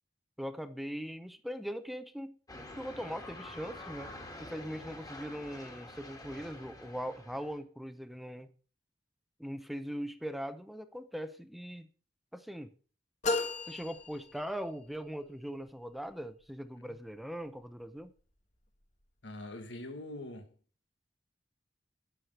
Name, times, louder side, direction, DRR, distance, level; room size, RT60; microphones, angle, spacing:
voice 1, 0.4-4.1 4.4-8.5 9.4-11.9 12.3-12.7 13.7-18.1, equal, ahead, 0.7 m, -40 dB
sound 1, 2.5-7.6, left 1 dB, 20° left, 2.1 m, -47 dB
sound 2, 13.2-14.9, left 3 dB, 40° left, 1.4 m, -35 dB
voice 2, 19.2-20.5, left 1 dB, 80° left, 1.6 m, -43 dB
11.5 x 6.3 x 6.5 m
head